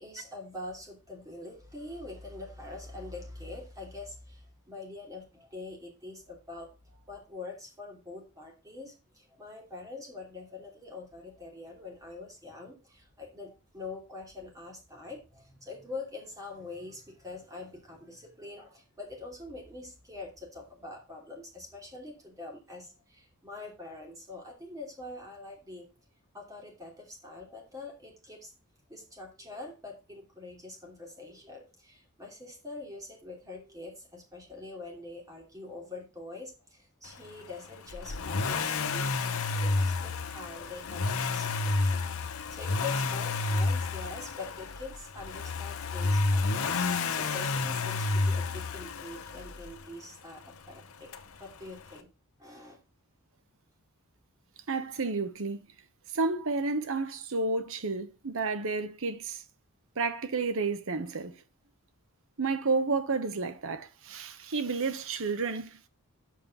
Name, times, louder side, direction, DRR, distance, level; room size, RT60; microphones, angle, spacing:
voice 1, 0.0-25.9 26.3-28.5 28.9-51.1 51.4-52.1 52.4-52.8, left 3 dB, 15° right, 2.9 m, -44 dB
Accelerating revving vroom, 37.9-49.8 51.1-51.2, left 3 dB, 65° left, 0.8 m, -30 dB
voice 2, 54.7-55.6 56.1-59.4 60.0-61.4 62.4-65.9, right 3 dB, 65° right, 1.0 m, -31 dB
7.5 x 5.2 x 5.4 m
head